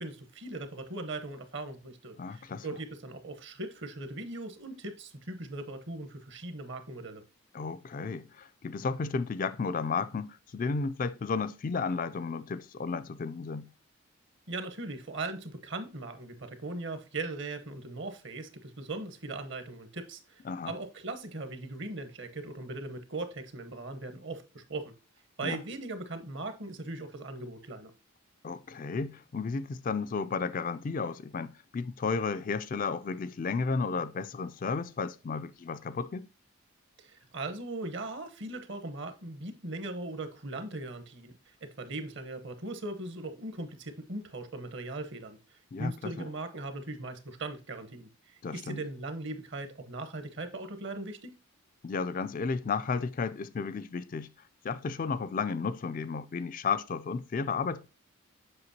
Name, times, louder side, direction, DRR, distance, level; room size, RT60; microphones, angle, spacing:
voice 1, 0.0-7.2 14.5-24.9 25.4-27.9 37.0-51.3, right 2 dB, 55° right, 1.0 m, -39 dB
voice 2, 2.2-2.7 7.5-13.7 20.4-20.7 25.4-25.6 28.4-36.3 45.7-46.3 48.4-48.8 51.8-54.3 54.6-57.9, left 4 dB, 40° left, 0.3 m, -33 dB
7.8 x 5.8 x 2.8 m
head